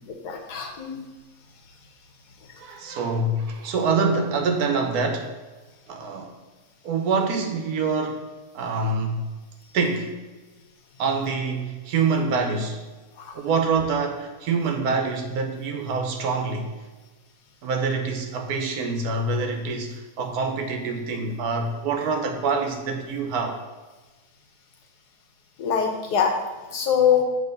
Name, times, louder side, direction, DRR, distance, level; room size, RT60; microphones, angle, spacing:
voice 1, 0.1-1.0 25.6-26.4 26.7-27.2, left 8 dB, 85° left, 3 dB, 1.5 m, -23 dB
voice 2, 2.6-5.3 5.9-6.4 6.8-8.2 8.5-9.3 9.7-10.1 11.0-12.8 13.3-16.7 17.6-23.6, right 4 dB, 70° right, 5 dB, 1.3 m, -25 dB
7.7 x 3.4 x 5.2 m, 1.2 s
omnidirectional pair, 1.7 m